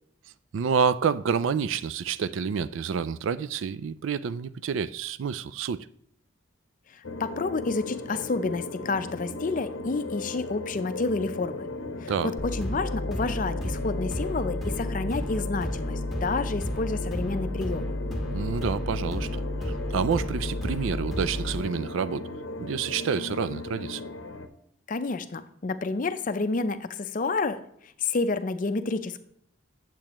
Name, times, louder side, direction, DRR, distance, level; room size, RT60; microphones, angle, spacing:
voice 1, 0.5-5.9 12.1-12.3 18.3-22.3 22.6-24.0, right 6 dB, 75° right, 0.4 m, -28 dB
voice 2, 6.9-11.6 12.0-17.9 24.9-29.2, left 3 dB, 40° left, 0.5 m, -30 dB
sound 1, 7.0-24.5, left 2 dB, 90° left, 0.7 m, -37 dB
sound 2, 12.4-21.6, left 1 dB, ahead, 1.5 m, -32 dB
8.7 x 7.5 x 3.0 m
head